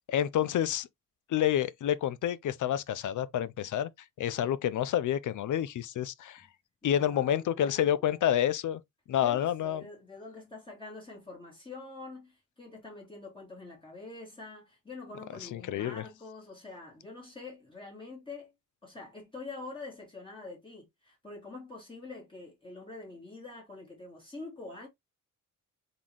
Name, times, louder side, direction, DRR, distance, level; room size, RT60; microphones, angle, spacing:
voice 1, 0.1-0.9 1.3-3.9 4.2-6.5 6.8-8.8 9.1-9.8 15.4-16.0, left 10 dB, 65° left, 0.5 m, -29 dB
voice 2, 6.8-8.2 9.2-18.5 18.8-24.9, left 3 dB, 15° left, 2.0 m, -46 dB
3.9 x 3.8 x 3.0 m
wide cardioid pair, 150°, 32 cm